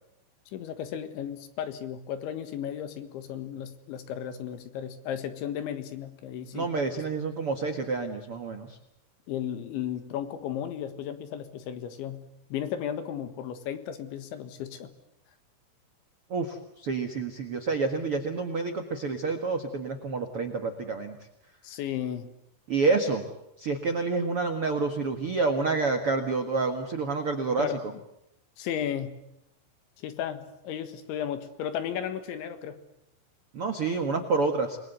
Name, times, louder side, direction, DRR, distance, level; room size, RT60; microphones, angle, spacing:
voice 1, 0.5-6.7 9.3-14.9 21.6-22.3 27.6-27.8 28.6-29.2 30.0-32.8, left 9 dB, 75° left, 9 dB, 3.9 m, -34 dB
voice 2, 6.5-8.8 16.3-21.2 22.7-23.2 23.6-27.8 33.5-34.8, right 4 dB, 85° right, 5 dB, 1.2 m, -28 dB
28.5 x 21.0 x 8.1 m, 0.82 s
omnidirectional pair, 5.5 m